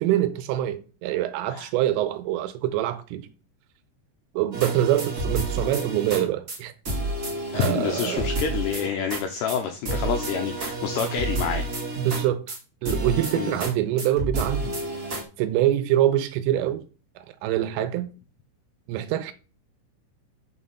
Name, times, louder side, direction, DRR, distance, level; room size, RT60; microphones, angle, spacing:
voice 1, 0.0-3.3 4.3-6.7 7.5-8.3 12.0-12.5 12.8-14.8 15.4-16.8 17.2-18.1 18.9-19.3, right 12 dB, 80° right, 3.2 m, -25 dB
sound 1, 4.5-6.2 6.5-6.6 6.9-9.2 9.5-9.6 9.9-12.6 12.9-13.7 14.0-15.2, right 2 dB, 60° right, 1.0 m, -30 dB
voice 2, 7.5-11.7 13.4-13.5, left 8 dB, 90° left, 2.4 m, -28 dB
7.1 x 6.5 x 5.6 m
omnidirectional pair, 5.8 m